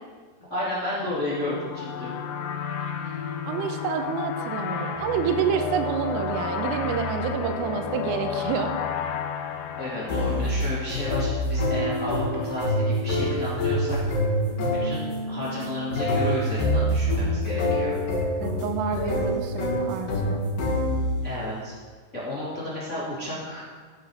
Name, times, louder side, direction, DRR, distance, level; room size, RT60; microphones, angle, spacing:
voice 1, 0.5-2.1 9.8-14.0 14.8-17.9 21.2-21.7 22.1-23.7, left 1 dB, 75° left, -8 dB, 0.6 m, -32 dB
sound 1, 1.0-11.4, left 7 dB, 90° left, 3.2 m, -32 dB
voice 2, 3.5-8.7 18.4-20.4, right 7 dB, 85° right, 6 dB, 3.4 m, -28 dB
Winnies Interlude, 10.1-21.3, left 1 dB, 50° left, 3.2 m, -26 dB
13.5 x 7.7 x 4.9 m, 1.5 s
omnidirectional pair, 5.8 m